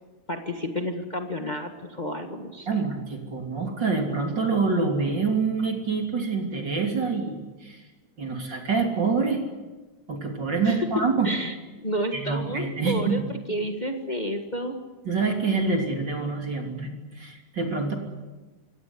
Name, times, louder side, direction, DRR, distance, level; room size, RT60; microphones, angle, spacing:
voice 1, 0.3-2.8 10.6-14.8, equal, 35° left, 5 dB, 0.7 m, -31 dB
voice 2, 2.7-7.8 8.2-9.4 10.1-11.3 12.1-13.2 15.1-17.9, right 4 dB, 35° right, 3 dB, 3.5 m, -26 dB
25.5 x 17.0 x 9.8 m, 1.2 s
omnidirectional pair, 3.6 m